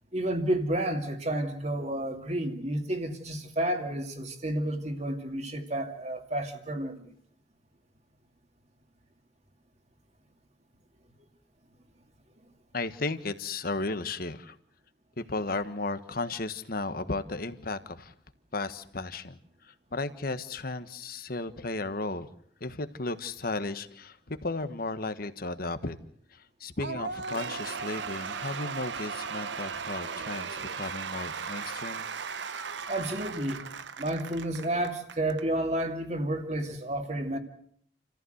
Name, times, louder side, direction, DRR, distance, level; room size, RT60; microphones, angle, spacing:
voice 1, 0.1-7.0 32.9-33.6 34.0-37.4, right 1 dB, 40° right, 2.5 m, -31 dB
voice 2, 12.7-14.6 15.2-18.1 18.5-22.3 22.6-26.0 26.3-32.0, left 3 dB, 55° left, 1.4 m, -34 dB
Cheering / Applause / Crowd, 26.8-35.4, right 5 dB, 85° right, 0.9 m, -37 dB
29.5 x 14.5 x 8.0 m
head